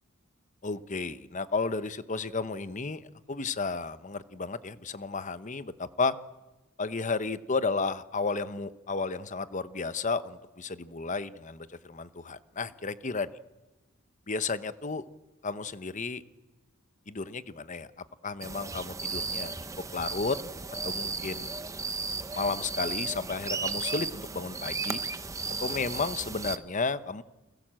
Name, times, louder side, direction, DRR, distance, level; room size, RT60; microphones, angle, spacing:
voice 1, 0.6-6.1 6.8-13.3 14.3-15.0 15.4-16.2 17.1-17.9 18.2-19.5 19.9-20.4 20.8-21.5 22.3-25.0 25.6-27.2, left 4 dB, 35° left, 13 dB, 0.9 m, -32 dB
sound 1, 18.4-26.6, right 4 dB, 15° right, 0.8 m, -35 dB
29.0 x 21.0 x 7.7 m, 1.1 s
head